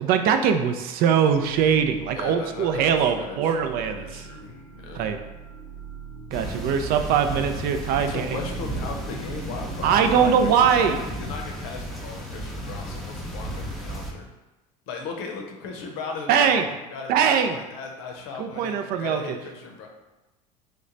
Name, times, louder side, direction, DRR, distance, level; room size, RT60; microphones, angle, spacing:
voice 1, 0.0-4.2 4.9-5.2 6.3-8.4 9.8-11.0 16.3-16.6 17.1-17.6 18.4-19.2, right 7 dB, 55° right, 7 dB, 0.4 m, -21 dB
sound 1, 1.3-11.1, right 6 dB, 90° right, 0.7 m, -41 dB
voice 2, 2.1-5.1 8.0-14.3 14.9-19.9, left 4 dB, 70° left, 2 dB, 0.7 m, -37 dB
sound 2, 6.3-14.1, right 1 dB, ahead, 0.6 m, -34 dB
3.0 x 2.1 x 3.8 m, 1.1 s
hypercardioid pair, 75°, 19 cm